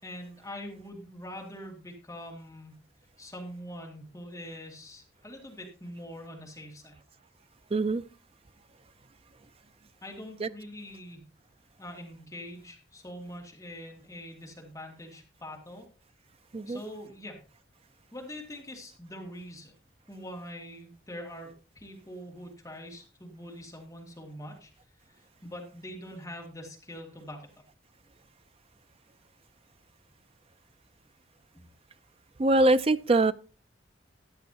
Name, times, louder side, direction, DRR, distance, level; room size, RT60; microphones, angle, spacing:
voice 1, 0.0-2.7 3.2-6.9 10.0-11.2 11.8-15.9 16.7-17.4 18.1-19.7 20.1-24.7 25.1-27.5 31.5-31.6, equal, 15° left, 2.3 m, -43 dB
voice 2, 7.7-8.0 10.4-10.5 16.5-16.8 32.4-33.3, right 2 dB, 30° right, 0.4 m, -23 dB
14.0 x 9.8 x 2.9 m
head